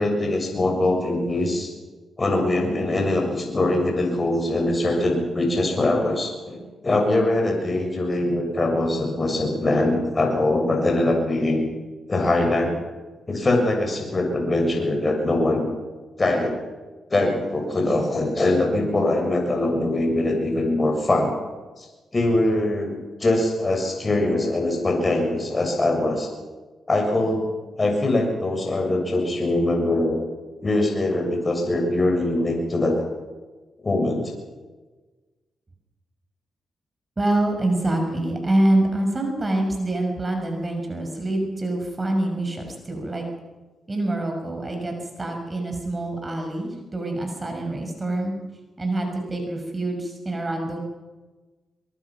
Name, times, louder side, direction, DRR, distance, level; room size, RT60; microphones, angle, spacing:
voice 1, 0.0-1.7 2.2-11.6 12.1-12.7 13.3-15.7 16.2-16.6 17.1-21.3 21.8-21.9 22.1-26.3 26.9-27.4 27.8-30.2 30.6-33.1 33.8-34.3, left 2 dB, 30° left, 1 dB, 7.1 m, -22 dB
voice 2, 37.2-43.2 43.9-48.3 48.8-50.8, right 1 dB, 25° right, 3 dB, 6.0 m, -25 dB
23.5 x 23.0 x 6.1 m, 1.2 s
cardioid pair, 70°, 0 cm